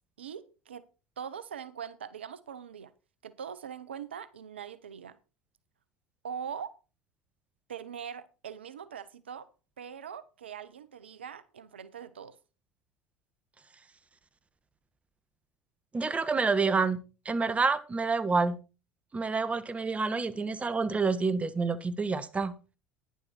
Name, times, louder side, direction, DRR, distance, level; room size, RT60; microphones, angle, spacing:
voice 1, 0.2-0.8 1.2-2.9 3.2-5.2 6.2-6.7 7.7-9.5 9.8-12.4, right 8 dB, 90° right, 0.7 m, -42 dB
voice 2, 15.9-17.0 17.2-18.6 19.1-22.5, right 4 dB, 20° right, 1.4 m, -28 dB
10.5 x 10.5 x 4.3 m
hypercardioid pair, 75°, 6 cm